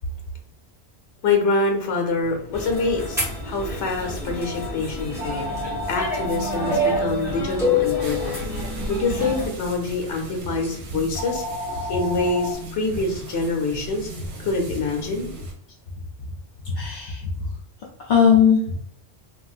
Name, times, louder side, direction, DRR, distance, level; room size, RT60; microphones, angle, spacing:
voice 1, 1.2-5.5 5.9-8.4 8.9-11.4 11.9-14.1 14.4-15.3, left 3 dB, 75° left, 2 dB, 1.0 m, -25 dB
sound 1, 2.2-12.5, left 1 dB, 45° right, 0.8 m, -36 dB
sound 2, 2.5-9.5, left 2 dB, ahead, 1.1 m, -27 dB
sound 3, 8.0-15.5, right 2 dB, 70° right, 1.0 m, -37 dB
voice 2, 16.6-17.5 18.0-18.7, left 7 dB, 55° left, -4 dB, 0.6 m, -19 dB
3.4 x 2.5 x 2.3 m, 0.66 s
omnidirectional pair, 1.2 m